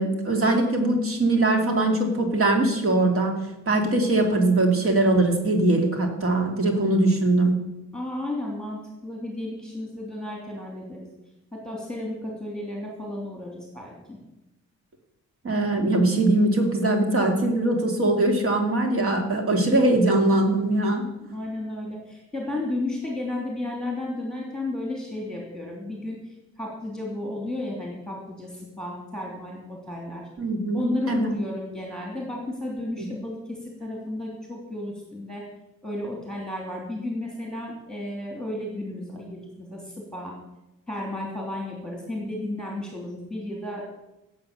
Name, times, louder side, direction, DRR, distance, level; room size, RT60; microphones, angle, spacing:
voice 1, 0.0-3.3 3.7-7.5 15.4-21.1 30.4-31.4 33.0-33.1, right 2 dB, 45° right, 3 dB, 2.7 m, -21 dB
voice 2, 7.9-11.1 11.5-14.2 19.1-19.2 21.2-30.3 30.7-35.4 35.8-40.3 40.9-43.8, left 1 dB, ahead, -1 dB, 2.8 m, -33 dB
17.5 x 7.6 x 6.7 m, 0.92 s
wide cardioid pair, 170°, 30 cm